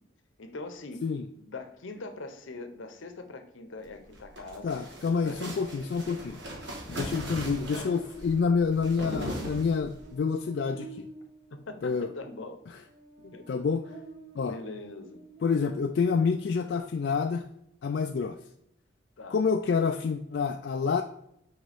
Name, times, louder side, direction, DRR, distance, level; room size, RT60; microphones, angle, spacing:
voice 1, 0.4-1.0 1.3-5.4 11.7-12.6 13.2-13.4 14.4-15.2 19.2-19.4, left 3 dB, 80° left, 7 dB, 0.8 m, -42 dB
sound 1, 4.0-10.1, equal, 65° right, 1.4 m, -39 dB
voice 2, 4.6-6.4 6.9-11.1 11.8-12.1 13.5-13.8 14.4-14.6 15.4-17.4 17.8-18.4 19.3-21.0, left 5 dB, 55° left, 5 dB, 0.3 m, -28 dB
Buzz, 6.5-16.0, right 3 dB, 30° right, 1.2 m, -51 dB
6.3 x 4.5 x 3.4 m, 0.76 s
head